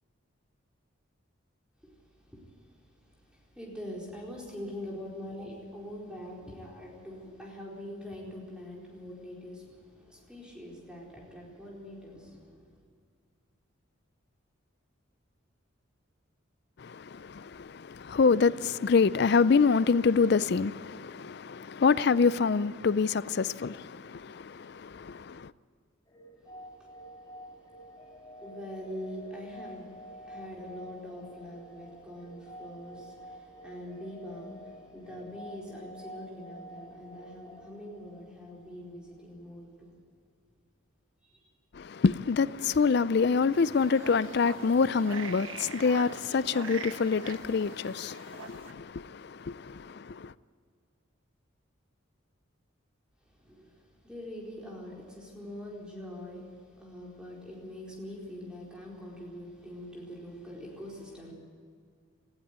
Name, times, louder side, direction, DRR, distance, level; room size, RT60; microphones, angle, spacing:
voice 1, 1.8-12.7 26.4-39.9 41.2-41.5 53.3-61.3, left 1 dB, 5° right, 4.3 m, -44 dB
voice 2, 16.8-25.5 41.7-50.3, left 5 dB, 50° left, 0.4 m, -26 dB
sound 1, 26.1-38.8, equal, 20° left, 2.5 m, -48 dB
sound 2, 43.5-48.7, right 5 dB, 75° right, 1.2 m, -44 dB
18.5 x 15.0 x 9.5 m
head